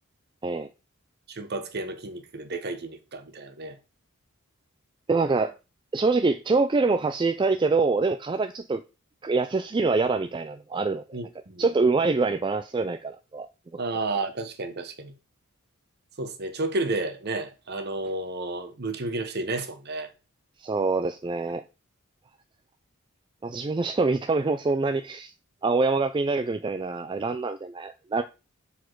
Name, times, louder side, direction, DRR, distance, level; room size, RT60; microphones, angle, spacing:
voice 1, 1.3-3.8 11.1-11.6 13.8-15.1 16.2-20.1, right 2 dB, 50° right, 1.0 m, -32 dB
voice 2, 5.1-5.5 5.9-8.8 9.2-11.2 11.6-13.5 20.6-21.6 23.4-25.3 25.6-28.2, right 3 dB, 20° right, 0.3 m, -25 dB
7.0 x 4.2 x 4.6 m
head